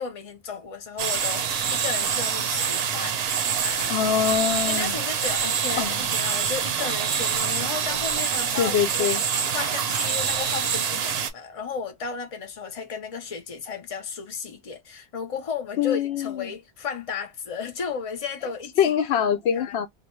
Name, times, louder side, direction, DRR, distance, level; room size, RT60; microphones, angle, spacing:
voice 1, 0.0-3.9 4.7-9.1 9.5-18.8 19.5-19.8, left 6 dB, 35° left, 0.8 m, -34 dB
sound 1, 1.0-11.3, right 7 dB, 70° right, 0.8 m, -26 dB
voice 2, 3.9-4.9 5.8-6.0 8.6-9.2 15.8-16.5 18.8-19.9, left 8 dB, 80° left, 0.8 m, -24 dB
2.5 x 2.1 x 3.0 m
omnidirectional pair, 1.1 m